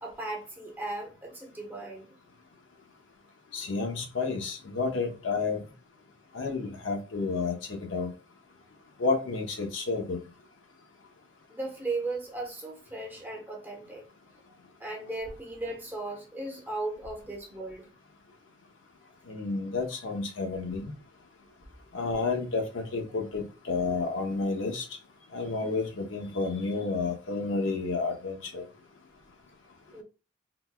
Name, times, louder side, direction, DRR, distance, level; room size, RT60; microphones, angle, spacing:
voice 1, 0.0-2.1 11.5-14.0 14.8-17.9 29.9-30.0, right 2 dB, 10° right, 0.7 m, -36 dB
voice 2, 3.5-5.6 6.3-8.1 9.0-10.2 19.3-20.9 21.9-24.9 25.3-28.6, left 4 dB, 80° left, 0.7 m, -30 dB
3.9 x 2.1 x 2.2 m
head